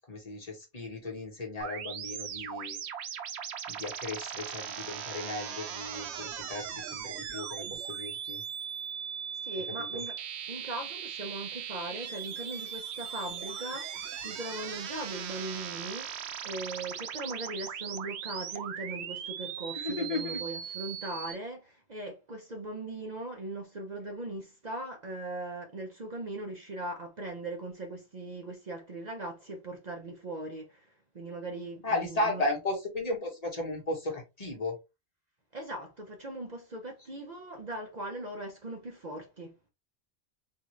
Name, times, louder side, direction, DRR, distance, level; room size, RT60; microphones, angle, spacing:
voice 1, 0.1-2.8 3.7-8.4 9.9-10.0 19.7-20.4 31.8-34.8, left 2 dB, 35° left, 1.1 m, -35 dB
sound 1, 1.6-21.3, right 8 dB, 75° right, 0.8 m, -39 dB
voice 2, 9.4-10.2 10.5-32.4 35.5-39.5, right 2 dB, 45° right, 0.7 m, -39 dB
3.7 x 2.4 x 3.1 m
omnidirectional pair, 1.1 m